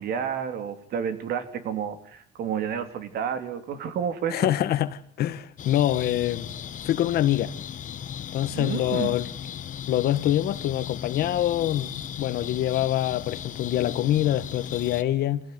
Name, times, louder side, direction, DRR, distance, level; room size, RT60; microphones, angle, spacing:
voice 1, 0.0-4.5 8.5-9.2, right 8 dB, 70° right, 3.2 m, -30 dB
voice 2, 4.3-6.5 6.8-7.5 8.3-9.3 9.9-15.4, left 12 dB, 70° left, 1.5 m, -25 dB
sound 1, 5.6-15.0, left 9 dB, 50° left, 1.2 m, -37 dB
27.0 x 16.5 x 9.5 m
cardioid pair, 110°, 17 cm